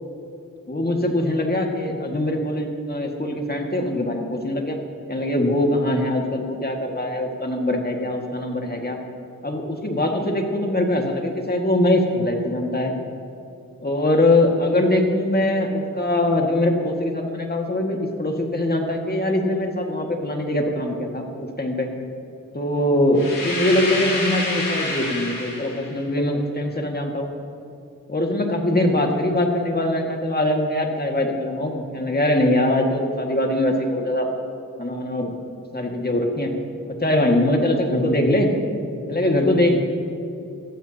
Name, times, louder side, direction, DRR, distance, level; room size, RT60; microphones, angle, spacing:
voice 1, 0.7-4.8 5.1-9.0 9.4-12.9 13.8-21.9 22.5-27.3 28.1-34.3 34.8-35.4 35.7-36.5 36.9-38.5 39.1-39.8, left 1 dB, 30° left, 1 dB, 2.0 m, -22 dB
sound 1, 23.2-25.9, left 2 dB, 85° left, 3.4 m, -27 dB
18.0 x 14.5 x 2.9 m, 2.6 s
cardioid pair, 60°, 33 cm